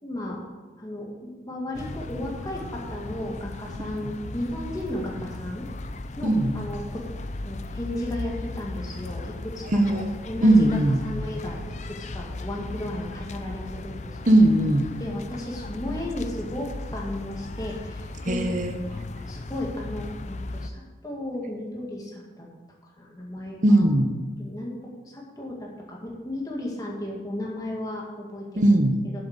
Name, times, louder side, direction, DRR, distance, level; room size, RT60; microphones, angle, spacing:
voice 1, 0.0-0.4 0.8-5.7 6.2-7.1 7.4-10.7 11.0-14.4 15.0-18.4 18.9-22.5 22.8-23.8 24.4-28.7 29.0-29.2, left 1 dB, 20° left, -2 dB, 2.1 m, -34 dB
sound 1, 1.7-20.7, left 2 dB, 40° left, 0.5 m, -37 dB
voice 2, 9.7-10.1 10.4-11.0 14.3-14.9 18.3-18.8 23.6-24.1 28.6-29.0, right 1 dB, 40° right, 6 dB, 1.0 m, -19 dB
7.8 x 7.7 x 8.2 m, 1.3 s
head